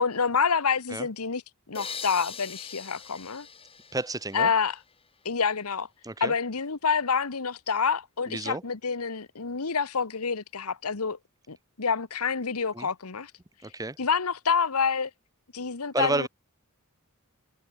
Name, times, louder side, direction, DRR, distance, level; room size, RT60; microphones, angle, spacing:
voice 1, 0.0-1.4 1.7-3.5 4.3-4.8 5.2-5.9 6.2-11.2 11.5-13.3 14.0-15.1 15.5-16.3, left 5 dB, 85° left, 1.2 m, -27 dB
sound 1, 1.7-5.3, left 6 dB, 25° left, 3.4 m, -42 dB
voice 2, 3.9-4.5 6.0-6.3 8.3-8.6 12.7-12.9 13.6-14.0 15.9-16.3, right 2 dB, 15° right, 1.4 m, -30 dB
head